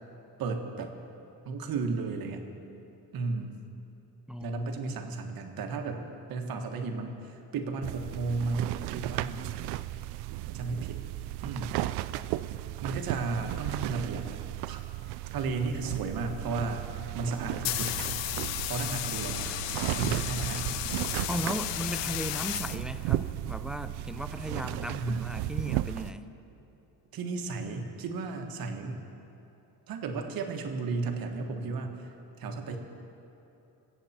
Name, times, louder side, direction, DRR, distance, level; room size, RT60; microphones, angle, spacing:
voice 1, 0.4-0.9 1.4-2.4 3.1-3.5 4.4-6.0 6.3-9.6 10.5-11.0 11.4-11.8 12.8-14.3 14.7-14.8 15.3-16.9 17.1-17.9 18.7-19.5 19.9-20.9 24.9-25.3 27.1-29.0 29.9-32.1 32.4-32.8, right 3 dB, 55° right, 4 dB, 1.5 m, -34 dB
voice 2, 4.3-5.0 21.3-26.3, equal, ahead, 10 dB, 0.3 m, -36 dB
sound 1, 7.8-26.1, right 16 dB, 75° right, 0.5 m, -35 dB
sound 2, 17.3-23.3, left 14 dB, 85° left, 0.6 m, -34 dB
23.5 x 8.1 x 4.4 m, 2.9 s
cardioid pair, 120°, 41 cm